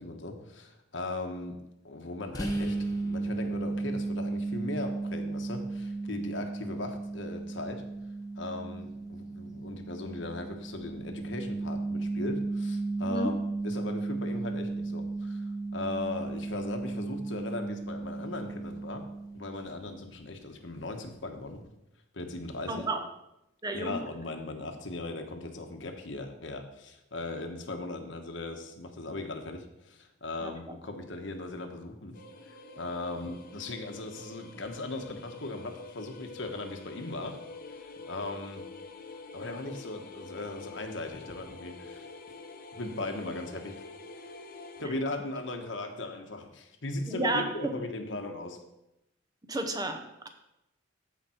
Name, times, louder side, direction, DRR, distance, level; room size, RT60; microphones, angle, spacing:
voice 1, 0.0-1.6 1.8-2.8 3.0-7.8 8.4-13.3 13.6-15.4 15.7-19.0 19.3-21.6 22.1-22.8 23.7-32.2 32.5-37.4 37.7-38.6 39.3-42.1 42.7-43.8 44.8-48.6, left 2 dB, 70° left, 5 dB, 1.2 m, -38 dB
sound 1, 2.3-19.8, right 3 dB, 20° left, 1.0 m, -35 dB
voice 2, 22.7-23.1 23.6-24.0 30.4-30.8 47.1-47.7 49.4-50.3, right 2 dB, 20° right, 6 dB, 0.7 m, -32 dB
sound 2, 32.1-44.9, left 3 dB, 45° left, 0.9 m, -47 dB
14.5 x 5.1 x 4.4 m, 0.87 s
head